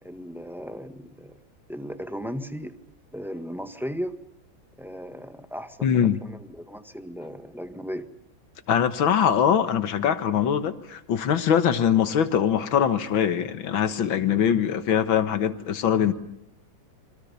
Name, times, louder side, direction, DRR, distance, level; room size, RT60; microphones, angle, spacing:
voice 1, 0.0-1.4 1.7-2.7 3.1-4.2 4.8-8.1, equal, ahead, 8 dB, 1.3 m, -36 dB
voice 2, 5.8-6.2 8.7-16.1, left 8 dB, 85° left, 10 dB, 2.1 m, -22 dB
26.5 x 24.5 x 6.9 m, 0.76 s
omnidirectional pair, 2.1 m